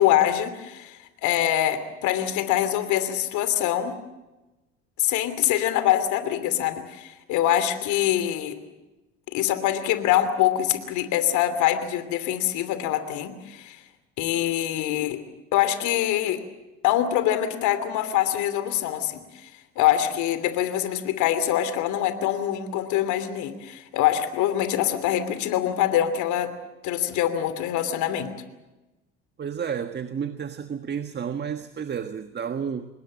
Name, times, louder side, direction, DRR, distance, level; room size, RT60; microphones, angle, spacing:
voice 1, 0.0-3.9 5.0-8.6 9.3-13.8 14.2-15.2 15.5-16.4 16.8-19.5 19.8-26.5 26.8-28.3, left 12 dB, 65° left, 2.9 m, -24 dB
voice 2, 29.4-32.9, right 7 dB, 35° right, 1.5 m, -31 dB
25.5 x 20.5 x 7.5 m
hypercardioid pair, 70°, 31 cm